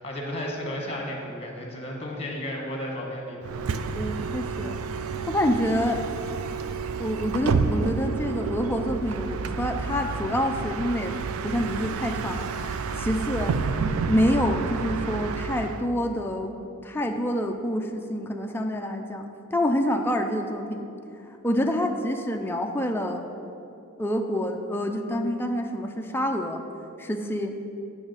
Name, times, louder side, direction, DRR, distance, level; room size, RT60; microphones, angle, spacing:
voice 1, 0.0-3.8, left 1 dB, 30° left, 0 dB, 1.2 m, -33 dB
Bus, 3.4-15.9, right 5 dB, 80° right, 0.4 m, -30 dB
voice 2, 4.0-4.8 5.3-6.0 7.0-11.2 11.4-16.5 16.8-19.2 19.5-20.9 21.4-23.2 24.0-26.6 27.0-27.5, equal, 10° left, 3 dB, 0.4 m, -27 dB
8.6 x 6.1 x 3.9 m, 2.6 s
head